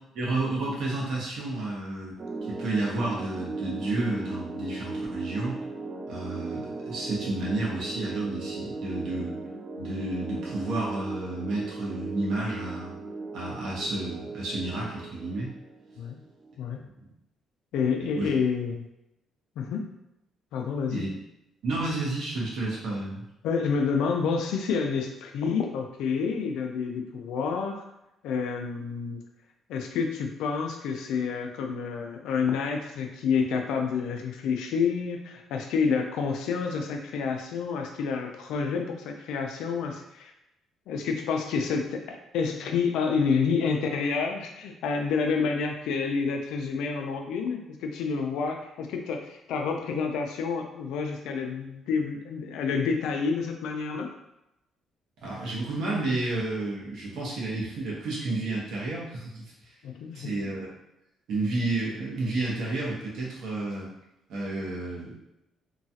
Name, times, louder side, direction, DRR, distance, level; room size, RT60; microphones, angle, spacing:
voice 1, 0.1-2.2 2.4-5.6 6.1-9.4 9.8-13.0 13.3-15.5 18.2-18.3 20.9-21.2 21.6-23.3 55.2-59.7 60.1-60.7 61.3-63.9 64.3-65.1, right 2 dB, 75° right, -4 dB, 1.1 m, -31 dB
sound 1, 2.2-16.5, right 3 dB, 35° right, 0.4 m, -37 dB
voice 2, 17.7-18.9 19.6-19.8 20.5-21.0 23.4-27.8 28.2-29.2 29.7-40.3 40.9-54.1 59.8-60.3, left 5 dB, 85° left, 3 dB, 0.4 m, -29 dB
3.0 x 2.3 x 2.7 m, 0.88 s
cardioid pair, 100°, 0 cm